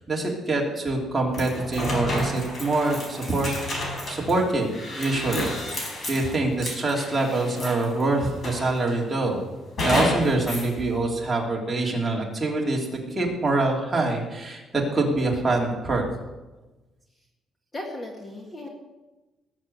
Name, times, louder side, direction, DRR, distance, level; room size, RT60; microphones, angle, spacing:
voice 1, 0.0-3.5 4.1-9.4 9.8-16.0, right 2 dB, 15° right, -2 dB, 3.1 m, -25 dB
sound 1, 1.3-8.0 8.4-9.0 9.8-10.7, left 1 dB, 35° left, 4.5 m, -31 dB
voice 2, 17.7-18.7, left 1 dB, 20° left, 1 dB, 1.8 m, -36 dB
19.0 x 7.6 x 8.1 m, 1.1 s
cardioid pair, 160°, 0 cm